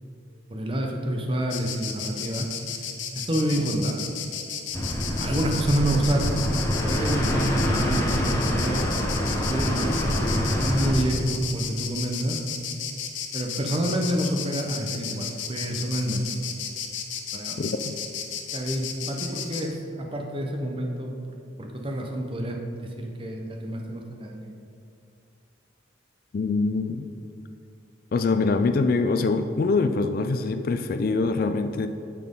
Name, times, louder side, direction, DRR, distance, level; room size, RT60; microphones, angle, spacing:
voice 1, 0.5-2.5 3.1-4.0 5.2-6.4 6.8-8.8 9.5-12.4 13.3-16.3 16.7-16.8 17.3-17.6 18.5-24.6, right 1 dB, 25° right, 2 dB, 0.8 m, -28 dB
Insect, 1.5-19.6, left 8 dB, 70° left, 0.7 m, -34 dB
sound 1, 4.7-10.9, equal, 15° left, 0.8 m, -26 dB
voice 2, 17.6-17.9 26.3-27.1 28.1-31.9, left 3 dB, 50° left, 8 dB, 0.3 m, -24 dB
9.2 x 5.9 x 3.7 m, 2.5 s
head